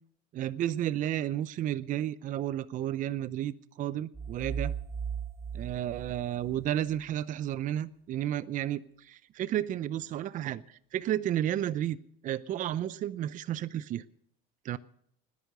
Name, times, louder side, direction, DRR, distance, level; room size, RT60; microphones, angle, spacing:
voice 1, 0.3-4.7 5.5-12.0 12.2-14.0 14.6-14.8, right 11 dB, 45° right, 17 dB, 0.6 m, -32 dB
sound 1, 4.1-7.0, right 7 dB, 15° right, 0.8 m, -37 dB
19.5 x 10.5 x 6.7 m, 0.66 s
supercardioid pair, 105°, 18 cm